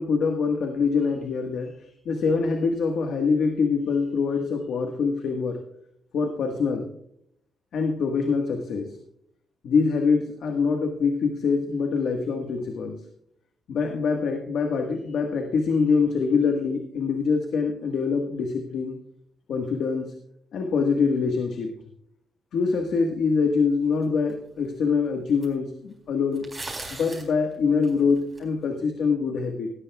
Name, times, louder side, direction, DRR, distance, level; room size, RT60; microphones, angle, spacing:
voice 1, 0.0-5.6 6.1-6.9 7.7-9.0 9.6-13.0 13.7-19.0 19.5-20.1 20.5-21.7 22.5-26.5 26.9-29.7, left 5 dB, 75° left, 4 dB, 1.4 m, -24 dB
sound 1, 24.3-24.4 25.4-25.5 26.4-27.3 27.8-28.4, right 2 dB, 20° right, 4.6 m, -37 dB
18.0 x 13.5 x 2.3 m, 0.72 s
cardioid pair, 110°, 0 cm